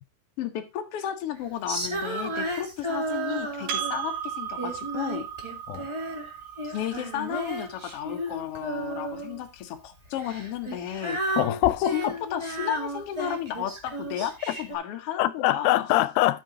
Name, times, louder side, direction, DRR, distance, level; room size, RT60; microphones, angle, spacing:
voice 1, 0.4-5.3 6.6-11.2 11.9-15.9, left 10 dB, 60° left, 1.7 m, -33 dB
Female singing, 1.7-4.0 4.6-6.3 6.6-9.4 10.2-14.8, right 1 dB, 15° right, 1.0 m, -33 dB
Percussion, 3.7-8.5, right 8 dB, 80° right, 3.8 m, -36 dB
voice 2, 11.4-11.9 15.2-16.4, left 16 dB, 90° left, 2.4 m, -23 dB
12.5 x 5.4 x 3.9 m
omnidirectional pair, 4.0 m